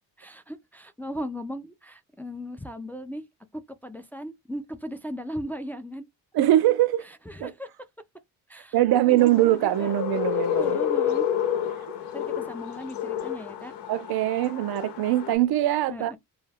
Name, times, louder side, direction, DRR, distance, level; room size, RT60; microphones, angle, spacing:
voice 1, 0.0-3.2 3.5-6.1 7.0-7.9 8.5-8.8 9.0-9.9 10.3-11.3 12.1-13.8 15.9-16.2, equal, 5° left, 0.3 m, -37 dB
voice 2, 6.3-7.0 7.4-7.5 8.7-10.8 13.9-16.1, right 14 dB, 70° right, 0.5 m, -22 dB
sound 1, 9.2-15.3, left 9 dB, 85° left, 0.9 m, -29 dB
2.3 x 2.2 x 3.3 m
cardioid pair, 90°, 39 cm